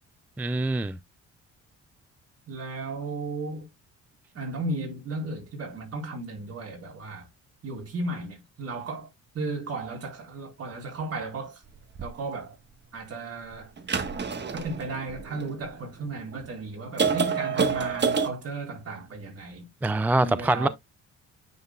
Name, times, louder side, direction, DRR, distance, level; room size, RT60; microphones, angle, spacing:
voice 1, 0.4-1.0 19.8-20.7, right 2 dB, 5° right, 0.3 m, -24 dB
voice 2, 2.5-3.7 4.3-7.3 7.6-9.1 9.3-11.6 12.0-12.6 12.9-13.7 14.5-19.7 20.2-20.7, right 2 dB, 50° right, 4.2 m, -35 dB
sound 1, 12.0-12.1 13.8-15.7 16.3-16.4 17.0-18.3, right 5 dB, 35° right, 1.3 m, -27 dB
9.5 x 4.4 x 2.3 m
cardioid pair, 90°, 30 cm